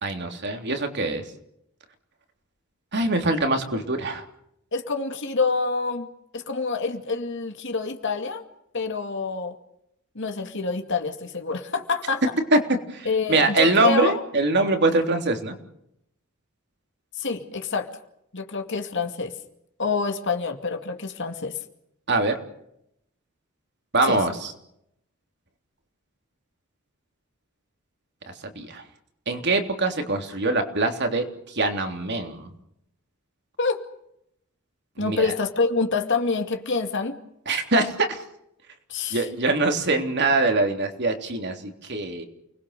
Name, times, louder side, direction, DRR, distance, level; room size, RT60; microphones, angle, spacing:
voice 1, 0.0-1.2 2.9-4.3 12.5-12.6 12.9-15.5 22.1-22.4 23.9-24.5 28.4-28.8 29.3-32.5 35.0-35.3 37.5-38.2 39.1-42.3, right 2 dB, 55° right, 5 dB, 3.4 m, -23 dB
voice 2, 4.7-8.4 8.7-9.6 10.2-12.2 13.1-14.2 17.2-18.0 18.3-19.3 19.8-21.6 24.1-24.2 33.6-33.8 35.0-37.1 38.9-39.2, left 4 dB, 60° left, 5 dB, 2.3 m, -27 dB
29.5 x 21.0 x 6.7 m, 0.77 s
head